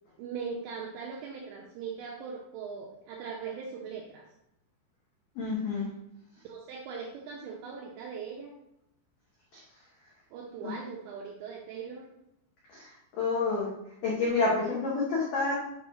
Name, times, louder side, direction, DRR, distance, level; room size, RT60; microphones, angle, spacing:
voice 1, 0.2-4.3 6.5-8.5 10.3-12.1, right 6 dB, 85° right, -1 dB, 2.5 m, -40 dB
voice 2, 5.4-5.9 10.6-10.7 12.7-12.9 13.2-13.7 14.0-15.6, left 3 dB, 90° left, -6 dB, 1.8 m, -28 dB
8.6 x 3.1 x 5.0 m, 0.83 s
omnidirectional pair, 6.0 m